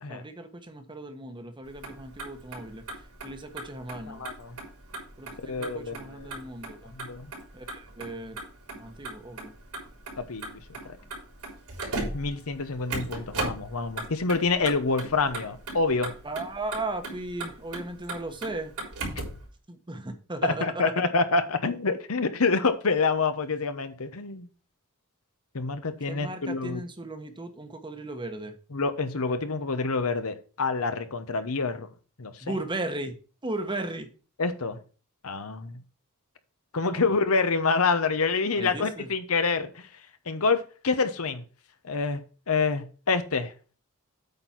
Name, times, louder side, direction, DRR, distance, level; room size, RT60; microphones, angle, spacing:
voice 1, 0.1-2.8 3.2-4.2 5.2-6.9 7.5-8.4 8.7-9.5 16.2-18.7 19.7-20.8 26.1-28.6 32.4-33.1 33.4-34.1 36.9-37.1 38.5-39.1, right 2 dB, 20° right, 7 dB, 1.1 m, -36 dB
Motor vehicle (road), 1.7-19.4, right 2 dB, 80° right, 3.7 m, -38 dB
voice 2, 4.1-4.6 5.5-6.4 6.9-7.3 10.2-10.6 10.8-11.0 12.1-16.1 20.4-24.5 25.5-26.8 28.7-31.9 32.2-32.3 34.4-34.8 35.2-35.8 36.7-39.9 40.3-41.4 41.8-42.2 42.5-43.5, left 4 dB, 70° left, 10 dB, 1.0 m, -27 dB
8.6 x 4.3 x 5.9 m, 0.37 s
head